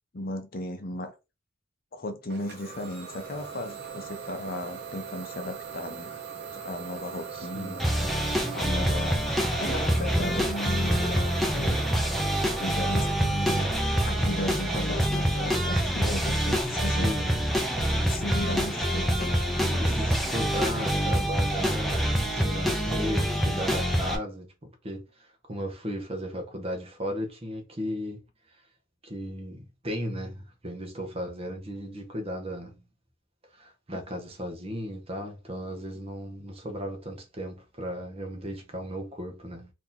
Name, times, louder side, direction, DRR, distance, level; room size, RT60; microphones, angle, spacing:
voice 1, 0.1-1.1 1.9-6.1 6.5-7.9 8.5-9.2 9.6-11.8 12.6-13.7 14.0-17.1 17.6-17.7 17.9-21.2 23.0-23.6, left 1 dB, 45° left, 0.6 m, -36 dB
Idling / Domestic sounds home sounds, 2.3-17.8, right 6 dB, 55° right, 0.9 m, -41 dB
voice 2, 7.3-7.8 17.0-17.5 19.8-24.5 24.8-28.2 29.0-32.8 33.5-39.7, equal, 30° right, 0.9 m, -36 dB
sound 1, 7.8-24.2, equal, ahead, 0.6 m, -26 dB
2.9 x 2.7 x 3.9 m
head